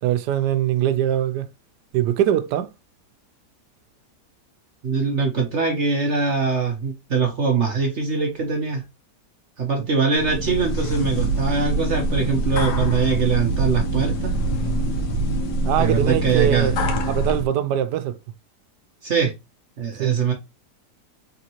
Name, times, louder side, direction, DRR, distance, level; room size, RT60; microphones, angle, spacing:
voice 1, 0.0-1.5 1.9-2.7 15.6-16.8 17.1-18.1 20.0-20.2, right 11 dB, 90° right, 1.2 m, -22 dB
voice 2, 4.8-8.8 9.6-14.3 15.8-16.7 19.0-19.3 19.8-20.3, right 5 dB, 50° right, 1.0 m, -22 dB
sound 1, 10.1-17.4, right 1 dB, 80° left, 1.5 m, -24 dB
3.9 x 3.5 x 2.9 m
omnidirectional pair, 1.8 m